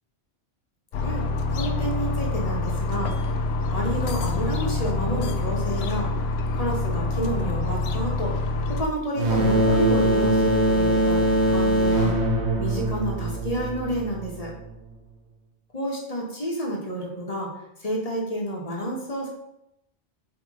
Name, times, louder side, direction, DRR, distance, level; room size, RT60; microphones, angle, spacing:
sound 1, 0.9-8.8, left 3 dB, 70° left, 0.8 m, -26 dB
voice 1, 0.9-1.3 1.5-3.1 3.7-6.1 6.5-8.3 8.7-12.1 12.6-14.5 15.7-17.5 17.8-19.3, equal, 35° left, -1 dB, 1.6 m, -30 dB
sound 2, 9.2-14.6, right 1 dB, 80° right, 1.5 m, -22 dB
7.2 x 3.4 x 5.0 m, 0.84 s
omnidirectional pair, 1.1 m